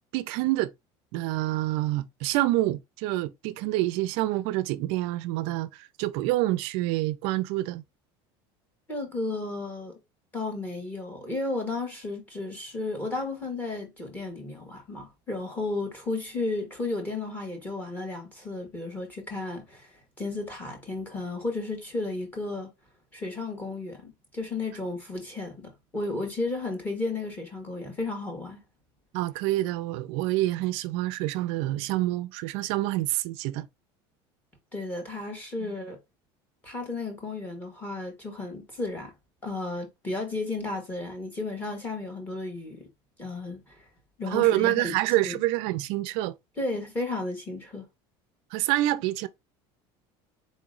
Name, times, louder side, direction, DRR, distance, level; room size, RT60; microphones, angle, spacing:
voice 1, 0.1-0.7 1.1-7.8 29.1-33.7 35.6-35.7 44.3-46.3 48.5-49.3, right 16 dB, 55° right, 0.4 m, -27 dB
voice 2, 8.9-9.9 10.3-22.7 23.1-28.6 34.7-36.0 36.6-39.1 39.4-42.9 43.2-43.9 44.2-44.9 45.2-45.4 46.6-47.8, left 2 dB, 15° left, 1.3 m, -33 dB
4.2 x 2.9 x 3.7 m
cardioid pair, 180°, 12 cm